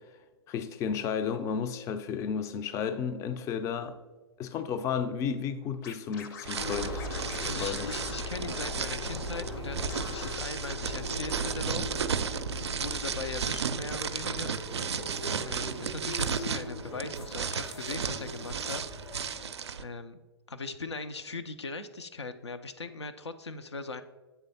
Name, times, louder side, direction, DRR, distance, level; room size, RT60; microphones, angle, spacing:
voice 1, 0.5-4.0 4.4-7.0 7.4-7.9, left 7 dB, 20° left, 0.4 m, -33 dB
Scratching (performance technique), 5.8-9.2 9.4-9.6 9.9-10.4, left 6 dB, 45° left, 0.7 m, -45 dB
sound 1, 6.4-19.8, right 6 dB, 80° right, 0.4 m, -34 dB
sound 2, 6.6-19.5, left 2 dB, 65° left, 1.1 m, -40 dB
voice 2, 7.5-12.1 12.8-14.6 15.4-18.8 19.8-20.2 20.5-24.0, left 3 dB, 85° left, 0.5 m, -39 dB
8.1 x 3.3 x 4.0 m
figure-of-eight pair, 110°, 14 cm